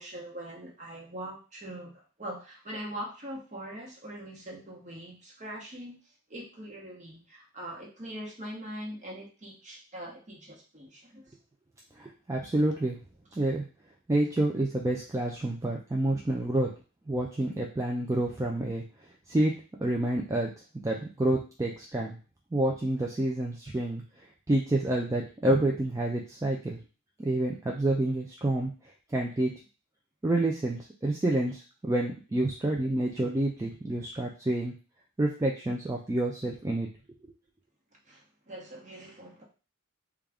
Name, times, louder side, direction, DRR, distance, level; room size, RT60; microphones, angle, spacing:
voice 1, 0.0-11.4 38.0-39.4, right 1 dB, 35° right, -2 dB, 1.0 m, -42 dB
voice 2, 12.0-13.0 13.4-13.6 14.1-16.7 17.1-18.8 19.3-19.5 19.8-20.5 20.8-22.2 22.5-24.0 24.5-26.8 27.2-28.7 29.1-29.5 30.2-34.7 35.2-36.9 37.2-37.3, right 1 dB, 15° right, -1 dB, 0.3 m, -28 dB
3.5 x 2.3 x 3.4 m, 0.34 s
head